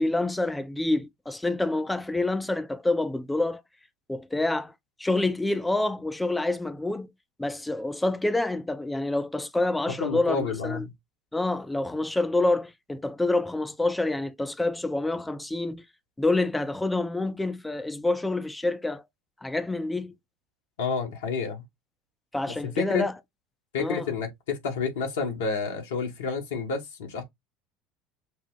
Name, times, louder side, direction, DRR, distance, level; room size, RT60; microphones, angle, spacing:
voice 1, 0.0-3.6 4.1-4.7 5.0-7.1 7.4-10.9 11.3-15.8 16.2-19.0 19.4-20.2 22.3-23.1 23.8-24.1, left 2 dB, 10° left, 0.7 m, -27 dB
voice 2, 10.0-10.9 20.8-21.6 22.6-23.1 23.7-27.2, left 5 dB, 75° left, 1.6 m, -30 dB
5.9 x 2.3 x 3.9 m
hypercardioid pair, 70°, 0 cm